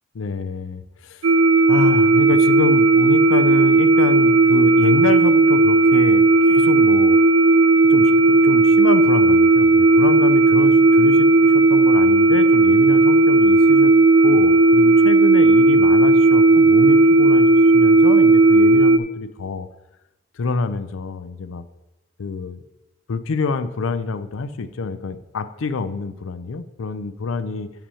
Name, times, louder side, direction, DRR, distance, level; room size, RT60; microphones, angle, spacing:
voice 1, 0.1-1.3 1.7-7.2 7.9-13.9 14.2-19.7 20.3-21.6 22.2-22.6 23.1-27.7, left 4 dB, 85° left, 12 dB, 0.5 m, -27 dB
sound 1, 1.2-19.0, right 3 dB, 90° right, 0.4 m, -14 dB
6.9 x 5.8 x 5.6 m, 0.95 s
head